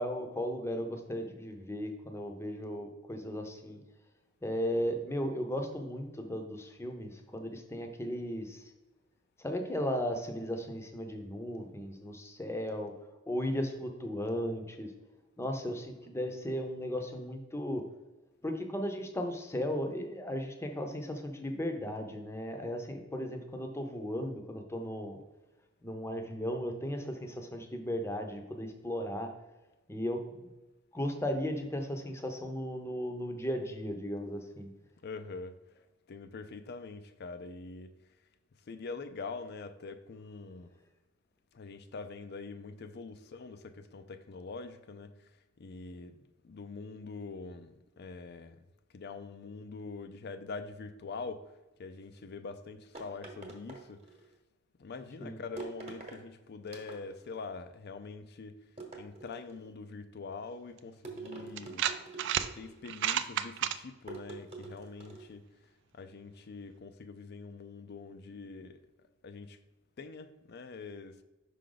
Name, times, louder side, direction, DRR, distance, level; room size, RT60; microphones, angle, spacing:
voice 1, 0.0-3.8 4.4-8.6 9.4-12.9 13.3-14.9 15.4-17.8 18.4-25.2 25.8-29.3 29.9-30.5 30.9-34.7 55.2-55.4, equal, 15° left, 0.7 m, -36 dB
voice 2, 35.0-35.6 36.1-37.9 38.7-40.7 41.5-45.3 45.6-48.6 48.9-51.5 51.8-54.0 54.8-58.6 58.9-61.9 62.5-65.4 65.9-68.8 69.2-69.6 70.0-71.2, left 4 dB, 55° left, 0.5 m, -44 dB
sound 1, 52.9-54.3 55.6-56.2 56.7-57.3 58.8-59.7 61.0-62.8 64.1-65.4, right 3 dB, 35° right, 1.1 m, -46 dB
sound 2, 60.8-60.9 61.6-62.5 62.9-63.8, right 10 dB, 60° right, 0.3 m, -31 dB
5.6 x 5.0 x 3.9 m
head